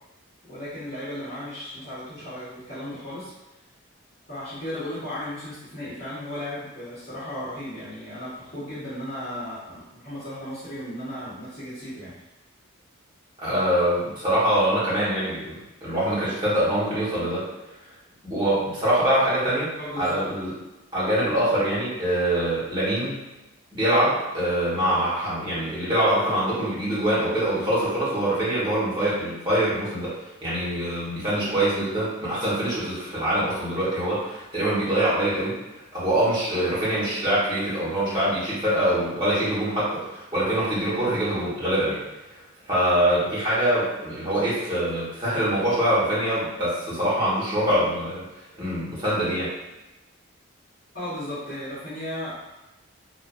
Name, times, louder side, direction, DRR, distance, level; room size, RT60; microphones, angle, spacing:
voice 1, 0.5-3.3 4.3-12.2 19.8-20.3 50.9-52.4, left 1 dB, 45° left, -13 dB, 1.1 m, -35 dB
voice 2, 13.4-17.4 18.2-19.7 20.0-20.5 20.9-23.2 23.7-30.1 30.4-35.6 35.9-42.0 42.7-48.2 48.6-49.5, right 1 dB, 20° right, -10 dB, 1.0 m, -24 dB
2.4 x 2.4 x 2.3 m, 1.0 s
head